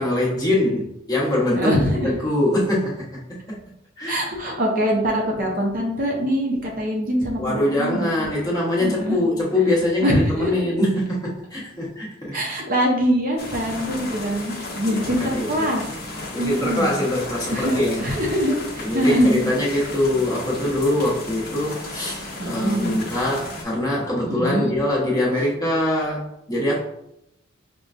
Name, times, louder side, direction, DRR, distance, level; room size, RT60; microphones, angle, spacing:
voice 1, 0.0-1.7 2.0-3.6 4.0-4.2 7.4-12.4 14.9-15.7 16.3-18.1 18.8-26.8, left 1 dB, 20° left, -6 dB, 1.0 m, -23 dB
voice 2, 1.5-2.2 4.1-8.1 8.8-9.2 10.0-10.8 12.3-16.0 16.4-16.9 17.5-19.4 22.4-23.0 24.2-24.7, equal, 45° right, 0 dB, 0.7 m, -23 dB
sound 1, 13.4-23.6, left 2 dB, 50° left, 0.9 m, -34 dB
5.2 x 2.2 x 2.5 m, 0.80 s
head